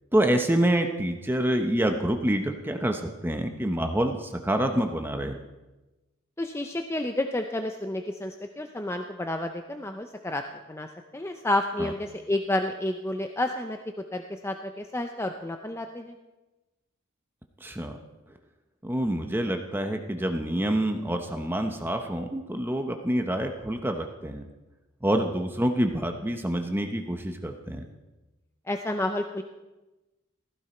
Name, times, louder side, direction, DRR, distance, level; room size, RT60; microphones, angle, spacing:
voice 1, 0.1-5.4 11.8-11.9 17.6-18.0 18.8-24.4 25.0-27.8, right 1 dB, 10° right, 5 dB, 0.9 m, -27 dB
voice 2, 6.4-10.4 10.7-10.9 11.1-13.8 14.1-16.2 28.7-29.4, left 1 dB, 15° left, 5 dB, 0.6 m, -30 dB
15.0 x 15.0 x 4.4 m, 1.1 s
head